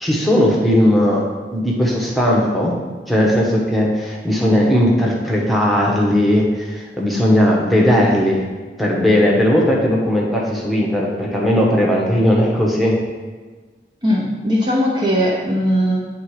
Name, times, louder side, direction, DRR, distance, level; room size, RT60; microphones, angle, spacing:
voice 1, 0.0-1.2 1.5-2.7 3.1-8.4 8.8-13.0, equal, ahead, -4 dB, 1.0 m, -17 dB
voice 2, 14.0-16.0, equal, 25° right, -4 dB, 0.8 m, -18 dB
8.8 x 3.7 x 4.8 m, 1.4 s
head